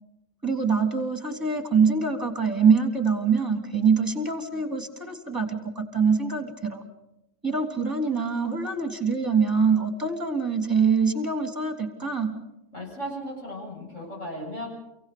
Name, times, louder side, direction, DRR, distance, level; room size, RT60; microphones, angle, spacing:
voice 1, 0.4-6.8 7.4-12.4, right 5 dB, 15° right, 5 dB, 3.1 m, -24 dB
voice 2, 12.7-14.7, equal, 80° left, -3 dB, 8.6 m, -36 dB
28.5 x 17.0 x 6.8 m, 0.91 s
omnidirectional pair, 1.3 m